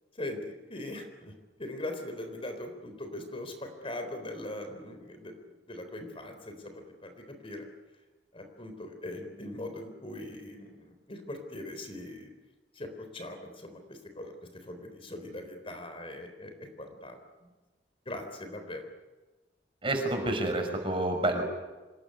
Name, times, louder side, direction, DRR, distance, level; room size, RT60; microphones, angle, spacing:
voice 1, 0.2-1.3 1.6-5.4 5.7-7.7 8.3-12.3 12.8-14.3 14.6-17.5 18.1-18.8, left 1 dB, 30° left, 6 dB, 3.9 m, -41 dB
voice 2, 19.8-21.4, right 1 dB, 30° right, 5 dB, 5.9 m, -28 dB
27.0 x 20.5 x 9.7 m, 1.2 s
head